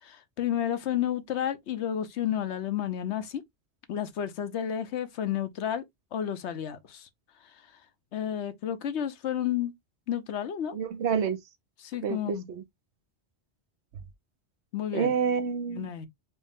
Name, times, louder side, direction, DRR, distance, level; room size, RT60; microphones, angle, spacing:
voice 1, 0.0-3.4 3.9-5.8 6.1-7.1 8.1-9.7 10.1-10.7 11.8-12.5 14.7-15.1 15.7-16.1, left 10 dB, 85° left, 1.0 m, -31 dB
voice 2, 10.7-11.4 12.0-12.6 14.9-15.9, right 7 dB, 80° right, 1.0 m, -28 dB
4.8 x 2.1 x 3.4 m
omnidirectional pair, 1.1 m